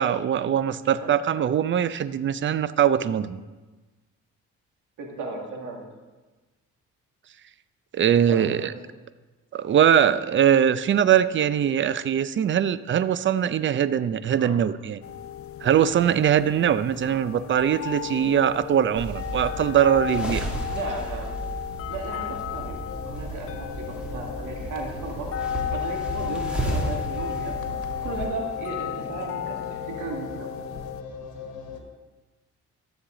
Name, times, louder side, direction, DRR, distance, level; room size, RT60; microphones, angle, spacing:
voice 1, 0.0-3.4 7.9-8.6 9.5-15.0 15.6-20.5, right 9 dB, 40° right, 15 dB, 0.5 m, -22 dB
voice 2, 0.8-1.2 5.0-5.9 8.1-8.8 14.3-14.6 20.7-21.4 21.7-25.3 25.7-27.6 28.0-30.5, right 3 dB, 85° right, 0 dB, 2.0 m, -36 dB
sound 1, 15.0-31.0, left 9 dB, 50° left, 0.5 m, -34 dB
sound 2, 19.0-28.2, right 1 dB, 5° right, 2.3 m, -34 dB
sound 3, 22.8-31.8, left 5 dB, 80° left, 1.4 m, -39 dB
13.0 x 7.4 x 3.8 m, 1.2 s
cardioid pair, 90°, 30 cm